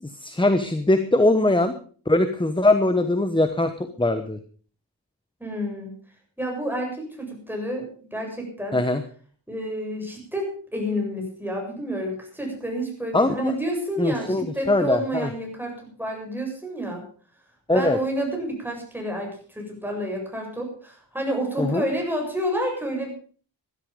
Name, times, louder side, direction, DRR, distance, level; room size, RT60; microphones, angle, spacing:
voice 1, 0.0-1.7 2.1-4.4 8.7-9.0 13.1-13.5 14.0-15.3 17.7-18.0 21.6-21.9, left 2 dB, 10° left, 10 dB, 1.1 m, -21 dB
voice 2, 5.4-5.9 6.4-8.8 9.5-17.0 17.7-23.1, equal, 5° right, 1 dB, 7.2 m, -29 dB
15.5 x 12.0 x 5.3 m, 0.43 s
wide cardioid pair, 85°, 44 cm